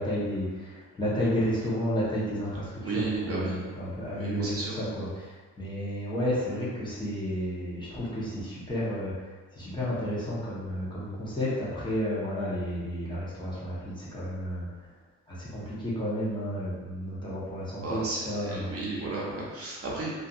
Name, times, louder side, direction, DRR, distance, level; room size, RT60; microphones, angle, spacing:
voice 1, 0.0-9.1 9.5-14.7 15.3-18.7, equal, 15° left, -9 dB, 0.9 m, -32 dB
voice 2, 2.8-3.6 4.1-4.7 17.8-20.1, right 3 dB, 50° right, -5 dB, 0.7 m, -33 dB
2.6 x 2.5 x 2.4 m, 1.3 s
cardioid pair, 90°, 30 cm